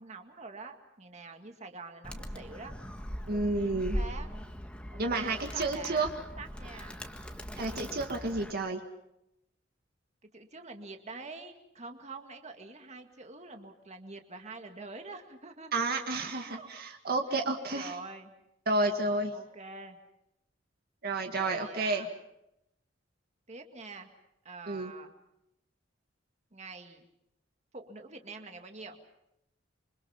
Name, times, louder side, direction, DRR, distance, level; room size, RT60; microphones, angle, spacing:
voice 1, 0.0-2.7 3.3-4.3 4.9-6.1 6.4-7.0 10.3-15.8 16.5-16.7 17.7-18.3 19.3-20.0 21.3-22.1 23.5-24.1 24.4-25.1 26.5-27.1 27.7-29.0, right 3 dB, 35° right, 5 dB, 2.1 m, -46 dB
Animal, 2.0-8.5, equal, 5° left, 1.7 m, -40 dB
voice 2, 3.3-4.0 5.0-6.1 7.6-8.8 15.7-18.0 18.7-19.3 21.0-22.1 24.7-24.9, right 2 dB, 55° right, 4 dB, 2.0 m, -30 dB
27.0 x 25.5 x 5.8 m, 0.82 s
head